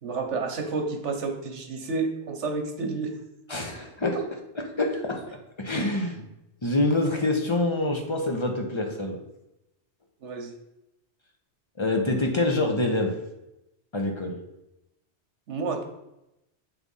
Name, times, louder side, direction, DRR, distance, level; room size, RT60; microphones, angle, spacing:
voice 1, 0.0-3.2 4.1-4.2 10.2-10.5 15.5-15.8, right 4 dB, 80° right, 4 dB, 1.4 m, -30 dB
voice 2, 3.5-4.2 4.6-5.2 5.6-6.2 6.6-9.2 11.8-13.1 13.9-14.4, left 2 dB, 25° left, 3 dB, 1.0 m, -26 dB
8.2 x 3.7 x 5.5 m, 0.90 s
omnidirectional pair, 1.2 m